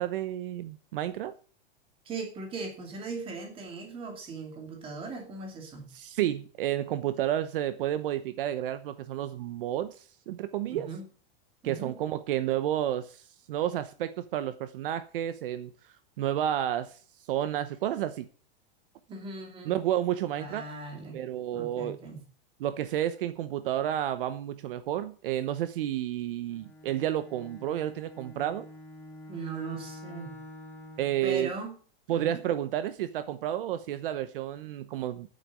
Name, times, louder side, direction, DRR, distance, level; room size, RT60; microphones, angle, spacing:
voice 1, 0.0-1.3 5.9-10.9 11.6-15.7 16.2-17.0 17.3-18.3 19.7-20.6 21.1-22.0 22.6-28.7 31.0-31.5 32.1-35.3, right 11 dB, 65° right, 13 dB, 1.0 m, -31 dB
voice 2, 2.0-5.9 10.7-11.1 11.6-12.0 19.1-19.8 20.3-21.2 21.5-22.2 29.3-30.3 31.2-31.7 32.1-32.4, right 4 dB, 20° right, 4 dB, 2.7 m, -39 dB
Bowed string instrument, 26.5-31.3, left 1 dB, 5° left, 2.2 m, -47 dB
9.3 x 7.9 x 8.5 m, 0.42 s
supercardioid pair, 170°, 30 cm